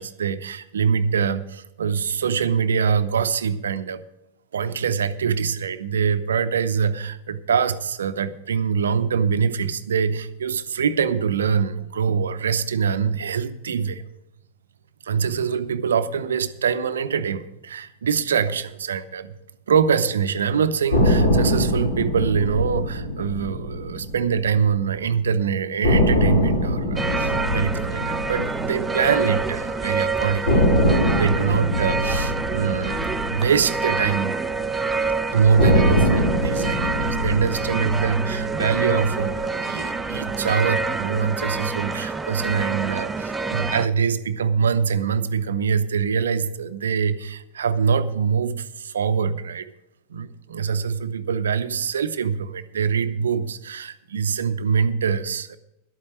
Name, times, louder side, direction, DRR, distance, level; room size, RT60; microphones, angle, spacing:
voice 1, 0.0-4.0 4.5-14.0 15.1-19.3 19.7-34.4 35.3-49.7 50.1-55.6, right 6 dB, 65° right, 12 dB, 0.7 m, -24 dB
sound 1, 20.9-25.0 25.3-25.4 25.8-29.9 30.5-34.8 35.6-39.9, equal, 65° left, 4.9 m, -23 dB
sound 2, 26.9-43.9, right 4 dB, 10° right, 0.5 m, -27 dB
11.5 x 8.6 x 6.2 m, 0.88 s
figure-of-eight pair, 90°, 0 cm